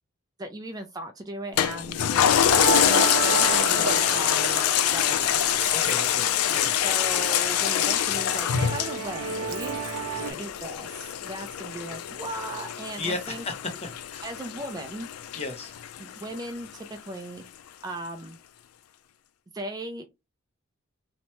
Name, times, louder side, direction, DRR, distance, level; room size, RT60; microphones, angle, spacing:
voice 1, 0.4-5.5 6.8-9.8 10.3-13.4 14.2-15.1 16.0-17.4 17.8-18.4 19.5-20.0, right 1 dB, 15° right, 0.3 m, -37 dB
Toilet flush, 1.6-16.4 16.9-17.0, left 10 dB, 80° left, 0.3 m, -25 dB
Musical instrument, 2.5-10.3, right 7 dB, 85° right, 0.4 m, -33 dB
voice 2, 5.7-6.8 10.2-10.4 13.0-14.3 15.4-15.7, left 3 dB, 30° left, 0.7 m, -35 dB
2.9 x 2.1 x 2.8 m
head